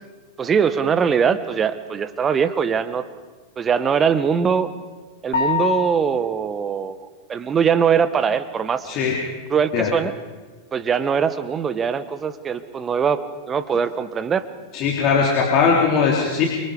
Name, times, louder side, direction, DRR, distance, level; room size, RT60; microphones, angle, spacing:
voice 1, 0.4-3.1 3.6-4.7 5.2-7.0 7.3-8.9 9.5-10.1 10.7-14.5, right 7 dB, 20° right, 13 dB, 1.5 m, -21 dB
sound 1, 5.3-6.4, left 7 dB, 65° left, 7.2 m, -24 dB
voice 2, 8.9-9.2 9.7-9.9 14.7-16.5, left 5 dB, 40° left, -1 dB, 3.5 m, -19 dB
28.5 x 25.0 x 5.1 m, 1.4 s
figure-of-eight pair, 90°, 0 cm